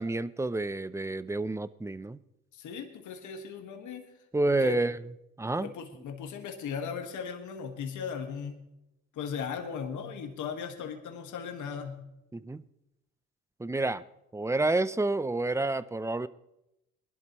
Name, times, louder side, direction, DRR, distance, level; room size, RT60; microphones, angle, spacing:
voice 1, 0.0-2.2 4.3-5.0 5.4-5.7 12.3-12.6 13.6-14.0 14.3-16.3, right 2 dB, 10° right, 16 dB, 0.5 m, -29 dB
voice 2, 2.5-4.1 4.5-4.8 5.6-8.6 9.1-12.1, left 6 dB, 75° left, 4 dB, 1.7 m, -37 dB
21.5 x 12.0 x 3.1 m, 0.87 s
cardioid pair, 90°, 30 cm